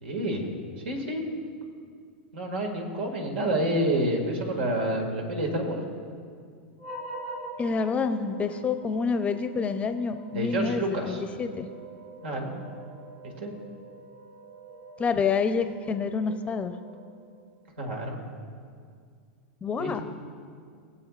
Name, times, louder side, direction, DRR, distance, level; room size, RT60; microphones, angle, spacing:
voice 1, 0.0-0.5 0.8-1.3 2.3-5.8 10.3-11.2 12.2-12.5 13.2-13.5 17.8-18.2 19.8-20.0, right 1 dB, 80° right, 2 dB, 2.1 m, -28 dB
sound 1, 6.8-17.3, right 2 dB, 65° right, 3.0 m, -44 dB
voice 2, 7.6-11.7 15.0-16.7 19.6-20.0, left 5 dB, 20° left, 8 dB, 0.6 m, -28 dB
21.5 x 7.7 x 2.5 m, 2.2 s
hypercardioid pair, 120°, 6 cm